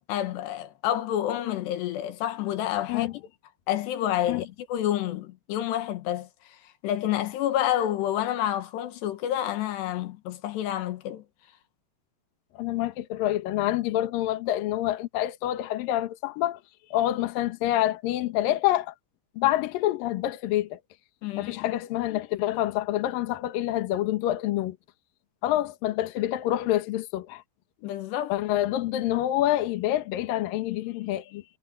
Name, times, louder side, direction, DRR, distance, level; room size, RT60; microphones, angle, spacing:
voice 1, 0.0-3.1 3.7-4.5 4.7-6.3 6.8-11.2 21.2-21.7 27.8-28.4, left 12 dB, 80° left, 3.4 m, -28 dB
voice 2, 12.5-16.6 16.9-18.9 19.4-20.8 21.4-24.8 25.4-27.4 28.3-31.4, left 14 dB, 65° left, 2.7 m, -27 dB
omnidirectional pair, 4.9 m